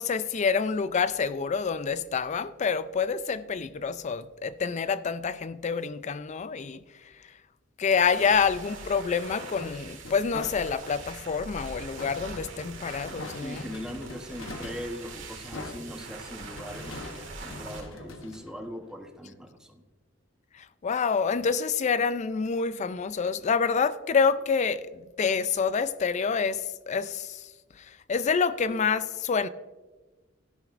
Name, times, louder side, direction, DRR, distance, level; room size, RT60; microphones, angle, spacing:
voice 1, 0.0-7.3 7.8-13.7 20.5-29.5, left 5 dB, 35° left, 0.4 m, -27 dB
sound 1, 7.9-17.8, right 3 dB, 70° right, 1.9 m, -43 dB
sound 2, 9.4-11.0 12.0-19.1, left 2 dB, 90° left, 0.9 m, -43 dB
voice 2, 13.4-19.8, equal, 5° right, 0.9 m, -40 dB
12.0 x 11.0 x 2.5 m
head